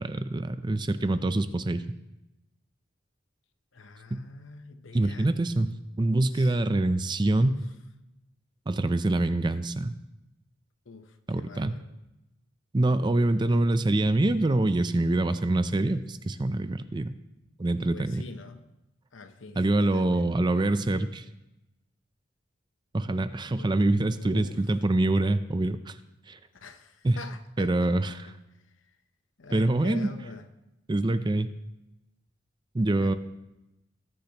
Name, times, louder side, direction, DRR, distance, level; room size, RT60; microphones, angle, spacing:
voice 1, 0.0-1.8 4.1-4.2 4.9-5.7 6.0-7.6 8.7-9.9 11.3-11.7 12.7-17.1 17.6-18.2 19.6-21.2 22.9-26.0 26.3-26.4 27.0-27.2 27.6-28.3 29.5-30.1 30.9-31.5 32.7-33.1, right 2 dB, 25° right, 12 dB, 0.4 m, -25 dB
voice 2, 3.7-5.3 6.3-6.8 7.4-7.6 10.9-11.9 17.9-18.6 19.1-20.3 23.6-23.7 24.2-24.6 26.5-28.4 29.4-30.5 33.0-33.2, left 3 dB, 80° left, 9 dB, 0.9 m, -45 dB
19.0 x 8.6 x 2.9 m, 0.95 s
head